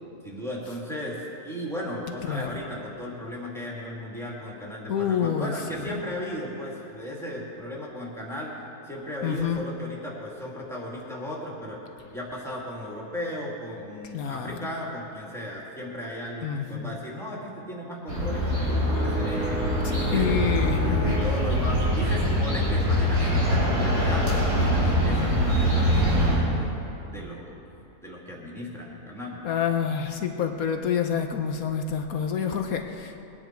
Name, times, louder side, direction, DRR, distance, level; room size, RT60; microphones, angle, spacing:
voice 1, 0.2-8.5 8.9-11.8 12.1-19.6 20.0-20.6 21.1-26.7 27.1-27.6 28.0-29.5, equal, ahead, -4 dB, 2.4 m, -36 dB
voice 2, 2.3-2.6 4.9-6.0 9.2-9.6 14.1-14.7 16.4-17.0 19.8-21.2 29.4-33.2, left 8 dB, 65° left, 5 dB, 1.1 m, -28 dB
sound 1, 18.1-26.4, equal, 70° right, 4.5 m, -23 dB
21.5 x 9.9 x 4.5 m, 2.9 s
omnidirectional pair, 1.7 m